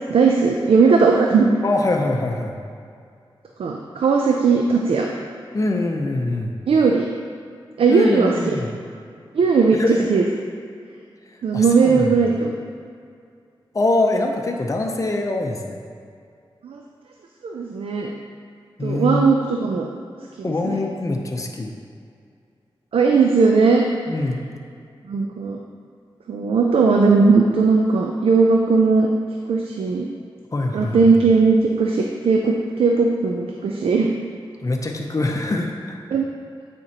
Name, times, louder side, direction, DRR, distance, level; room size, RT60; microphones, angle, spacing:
voice 1, 0.1-1.5 3.6-5.1 6.7-7.0 7.8-8.4 9.3-9.8 10.1-10.2 11.4-12.5 16.6-16.8 17.4-18.1 18.8-19.9 20.4-20.8 22.9-23.8 25.1-25.6 26.3-29.1 29.5-30.1 30.7-34.1 36.1-36.2, right 4 dB, 80° right, 1 dB, 0.4 m, -18 dB
voice 2, 1.6-2.5 5.5-6.6 7.9-8.7 9.8-10.1 11.5-12.1 13.7-15.8 18.8-19.2 20.4-21.7 24.1-24.4 30.5-31.0 34.6-36.0, left 2 dB, 35° left, 1 dB, 0.7 m, -23 dB
9.0 x 4.3 x 2.9 m, 2.3 s
cardioid pair, 50°, 9 cm